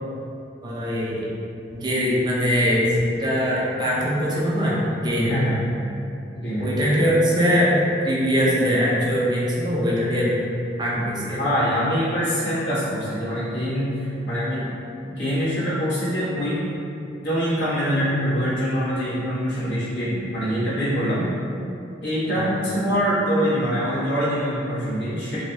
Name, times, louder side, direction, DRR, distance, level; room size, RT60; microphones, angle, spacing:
voice 1, 0.6-1.3 1.7-5.4 6.6-7.8 8.0-10.4 10.8-11.4 22.4-22.5, equal, 25° right, -6 dB, 0.5 m, -22 dB
voice 2, 5.3-5.6 6.3-6.7 10.9-11.0 11.3-14.7 15.0-16.6 17.2-21.3 22.0-25.4, equal, 70° left, -11 dB, 1.2 m, -24 dB
3.1 x 2.7 x 2.7 m, 2.7 s
head